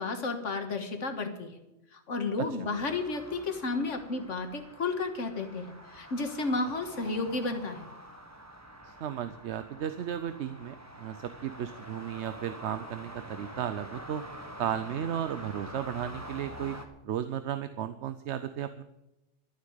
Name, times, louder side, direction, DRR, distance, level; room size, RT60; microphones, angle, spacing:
voice 1, 0.0-1.5 1.9-7.9, left 3 dB, 85° left, 6 dB, 1.9 m, -32 dB
sound 1, 2.7-16.9, equal, 15° right, 1.3 m, -46 dB
voice 2, 8.8-14.2 14.6-16.8 17.0-18.8, right 9 dB, 70° right, 12 dB, 0.9 m, -34 dB
12.5 x 7.6 x 9.0 m, 0.92 s
omnidirectional pair, 1.2 m